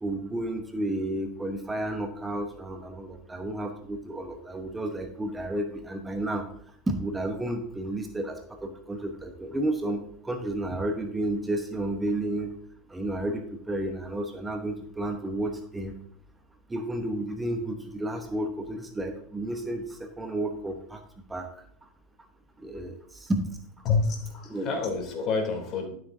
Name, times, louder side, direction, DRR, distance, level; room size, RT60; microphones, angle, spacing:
voice 1, 0.0-6.4 6.9-12.5 12.9-15.9 16.7-21.0 21.3-21.5 22.6-23.4 24.5-24.7, right 1 dB, 15° right, 5 dB, 1.0 m, -32 dB
voice 2, 23.8-25.9, left 4 dB, 45° left, 3 dB, 3.0 m, -28 dB
12.5 x 7.7 x 2.7 m, 0.66 s
hypercardioid pair, 90°, 0 cm